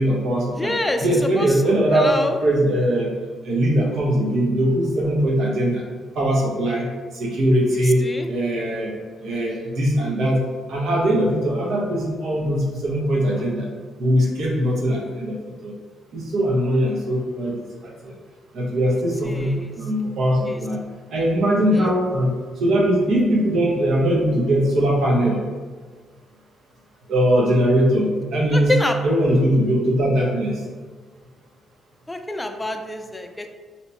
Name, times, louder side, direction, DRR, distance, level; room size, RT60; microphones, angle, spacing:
voice 1, 0.0-0.7 1.0-3.1 3.4-5.8 6.1-8.9 9.2-13.7 14.0-15.4 15.6-15.7 16.1-17.6 17.8-18.1 18.5-20.8 21.1-25.4 27.1-28.7 29.0-30.6, equal, 70° right, -2 dB, 0.8 m, -21 dB
voice 2, 0.5-1.1 1.4-2.4 7.7-8.3 19.2-19.7 20.5-20.6 21.7-21.9 28.5-29.0 32.1-33.5, left 1 dB, 15° left, 5 dB, 0.3 m, -26 dB
2.9 x 2.1 x 4.1 m, 1.5 s
cardioid pair, 90°, 0 cm